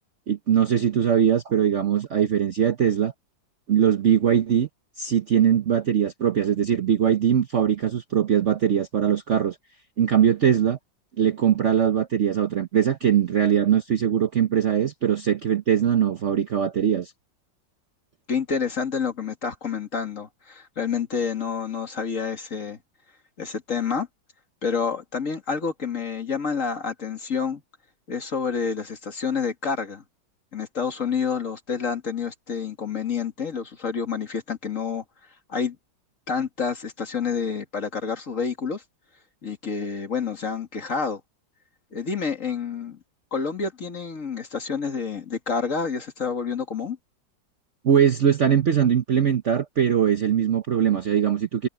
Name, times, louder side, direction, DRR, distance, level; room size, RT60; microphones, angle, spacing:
voice 1, 0.3-3.1 3.7-4.7 5.0-9.6 10.0-10.8 11.2-17.1 47.8-51.7, right 9 dB, 50° right, 0.9 m, -21 dB
voice 2, 18.3-22.8 23.4-24.1 24.6-27.6 28.1-30.0 30.5-35.0 35.5-35.8 36.3-38.8 39.4-41.2 41.9-43.0 43.3-47.0, left 5 dB, 45° left, 2.3 m, -28 dB
omnidirectional pair, 2.0 m